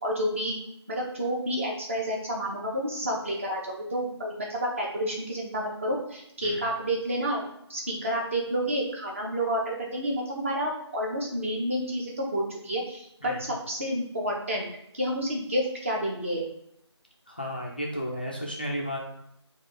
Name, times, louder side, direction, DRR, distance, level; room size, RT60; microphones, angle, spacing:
voice 1, 0.0-0.6 0.9-7.4 7.7-14.7 14.9-16.5, equal, 25° right, -2 dB, 0.8 m, -30 dB
voice 2, 17.3-19.0, equal, 20° left, -2 dB, 0.4 m, -33 dB
3.5 x 2.4 x 4.4 m, 0.76 s
figure-of-eight pair, 160°, 15 cm